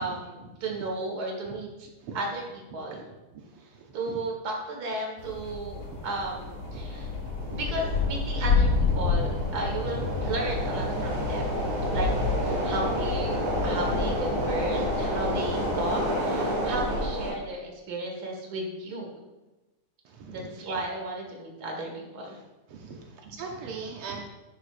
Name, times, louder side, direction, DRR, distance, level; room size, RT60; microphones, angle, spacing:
voice 1, 0.0-3.1 3.9-7.1 7.5-11.5 11.9-12.1 12.4-19.2 20.3-22.4, right 2 dB, 40° right, 0 dB, 1.5 m, -34 dB
sound 1, 5.2-16.0, left 4 dB, 70° left, 1.1 m, -30 dB
sound 2, 5.8-17.3, equal, 65° right, 3.8 m, -31 dB
sound 3, 10.1-16.0, left 2 dB, 90° left, 3.5 m, -47 dB
voice 2, 20.3-20.8 22.7-24.2, right 5 dB, 85° right, 1 dB, 1.2 m, -39 dB
10.5 x 9.9 x 2.5 m, 1.1 s
omnidirectional pair, 3.6 m